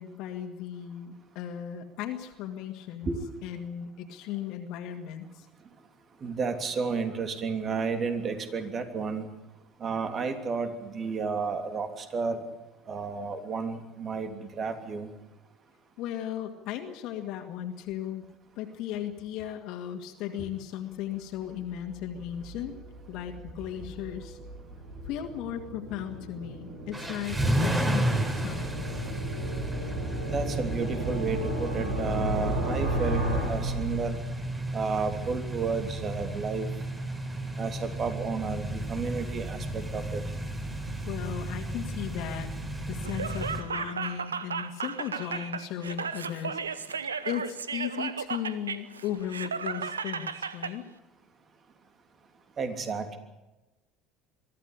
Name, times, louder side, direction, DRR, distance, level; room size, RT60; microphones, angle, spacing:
voice 1, 0.0-3.1 3.4-5.5 16.0-18.2 18.6-22.7 23.1-24.4 25.0-28.9 40.7-46.9 47.3-50.8, left 10 dB, 60° left, 4 dB, 2.1 m, -36 dB
voice 2, 6.2-9.3 9.8-12.4 12.9-15.1 30.3-34.2 34.7-36.7 37.6-40.2 52.6-53.2, right 4 dB, 40° right, 7 dB, 3.1 m, -32 dB
sound 1, 21.6-34.5, right 1 dB, 75° right, 7.6 m, -34 dB
sound 2, 26.9-43.6, right 1 dB, 20° right, 4.1 m, -33 dB
Laughter, 43.0-50.7, right 6 dB, 90° right, 0.9 m, -34 dB
23.5 x 14.0 x 10.0 m, 1.1 s
hypercardioid pair, 65°, 0 cm